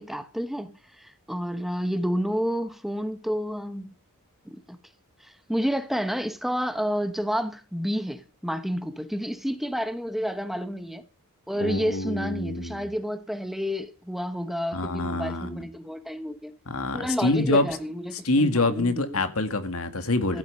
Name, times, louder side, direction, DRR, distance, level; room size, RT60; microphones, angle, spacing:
voice 1, 0.0-3.9 4.5-4.8 5.2-11.0 11.5-16.5 16.9-19.2 20.3-20.4, equal, ahead, 1.0 m, -30 dB
voice 2, 11.6-12.9 14.7-15.6 16.7-17.7 18.1-20.4, left 2 dB, 65° left, 2.1 m, -26 dB
15.0 x 12.0 x 5.4 m
head